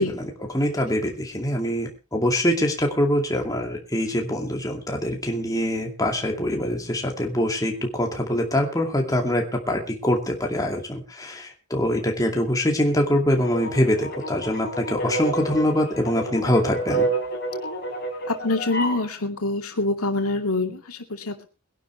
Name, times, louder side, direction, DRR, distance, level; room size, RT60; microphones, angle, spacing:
voice 1, 0.0-17.1, left 1 dB, 15° left, 2 dB, 2.4 m, -24 dB
sound 1, 13.4-19.0, right 2 dB, 50° left, 4.2 m, -29 dB
voice 2, 18.3-21.5, left 2 dB, 85° left, 5 dB, 2.4 m, -25 dB
22.0 x 11.5 x 3.3 m, 0.31 s
head